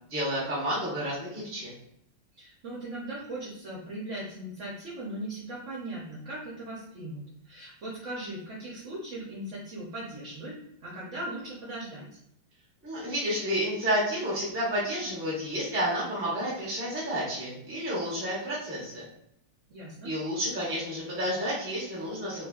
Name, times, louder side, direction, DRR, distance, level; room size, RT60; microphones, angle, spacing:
voice 1, 0.1-1.7 12.8-19.0 20.0-22.5, equal, 20° right, -7 dB, 0.3 m, -30 dB
voice 2, 2.3-12.2 19.7-20.1, right 1 dB, 60° right, -6 dB, 0.8 m, -39 dB
2.8 x 2.4 x 2.3 m, 0.75 s
omnidirectional pair, 1.9 m